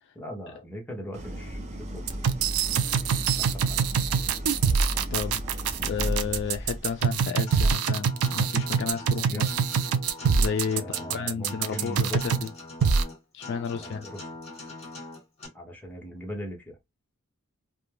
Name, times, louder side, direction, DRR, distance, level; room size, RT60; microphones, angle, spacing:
voice 1, 0.1-2.1 3.3-3.8 9.1-9.5 10.7-12.4 13.7-14.2 15.5-16.8, equal, 10° left, 0.8 m, -39 dB
Idling, 1.1-7.2, equal, 30° right, 0.5 m, -34 dB
sound 1, 2.1-12.5 12.8-13.0, right 6 dB, 85° right, 0.4 m, -24 dB
voice 2, 5.1-5.4 5.8-9.4 10.4-12.5 13.3-14.1, left 6 dB, 55° left, 0.3 m, -32 dB
Acoustic guitar, 7.5-15.5, left 2 dB, 30° left, 1.1 m, -42 dB
2.4 x 2.2 x 3.1 m
head